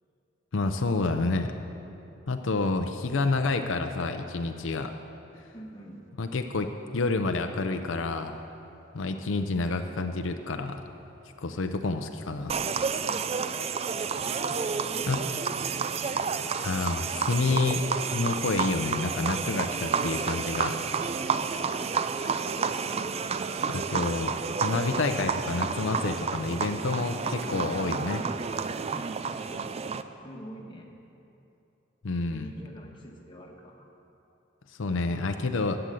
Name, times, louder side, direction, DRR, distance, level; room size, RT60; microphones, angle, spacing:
voice 1, 0.5-1.5 2.3-5.0 6.2-8.4 8.9-10.8 11.4-12.6 15.1-15.2 16.6-17.8 18.1-20.8 23.7-28.2 32.0-32.5 34.8-35.8, left 3 dB, 85° left, 6 dB, 0.6 m, -29 dB
voice 2, 5.5-6.0 13.0-13.5 14.4-15.9 21.4-22.0 27.4-27.9 29.2-29.8 30.2-30.9 32.3-33.9, equal, 25° left, 0 dB, 1.4 m, -45 dB
sound 1, 12.5-30.0, right 5 dB, 35° right, 0.4 m, -30 dB
12.0 x 7.9 x 7.7 m, 2.9 s
head